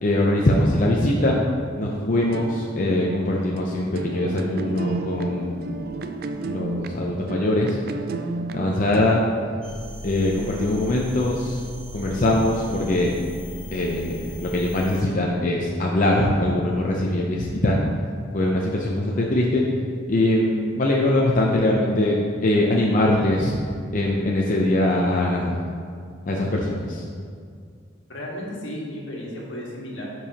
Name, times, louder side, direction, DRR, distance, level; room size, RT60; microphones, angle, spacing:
voice 1, 0.0-1.4 1.8-5.7 6.5-7.8 8.5-9.2 10.0-11.6 11.9-13.1 13.7-17.8 18.3-19.6 20.1-23.5 23.9-25.6 26.3-27.0, left 1 dB, 45° left, -2 dB, 0.6 m, -22 dB
sound 1, 2.2-9.9, right 3 dB, 50° right, 0.4 m, -33 dB
sound 2, 9.6-15.0, equal, 5° left, 1.6 m, -38 dB
voice 2, 28.1-30.1, left 1 dB, 80° left, -3 dB, 1.6 m, -34 dB
12.0 x 4.6 x 2.9 m, 2.2 s
head